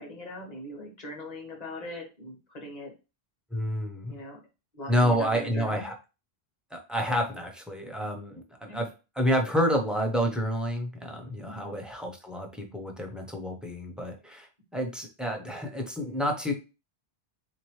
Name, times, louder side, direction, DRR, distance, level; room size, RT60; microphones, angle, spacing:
voice 1, 0.0-2.9 4.1-4.4 4.7-5.9 8.7-8.8 11.4-11.7, left 1 dB, 40° left, 1 dB, 1.3 m, -41 dB
voice 2, 3.5-4.1 4.9-5.9 6.7-8.9 9.2-16.5, equal, ahead, 2 dB, 0.6 m, -29 dB
3.7 x 2.9 x 3.1 m, 0.29 s
omnidirectional pair, 1.0 m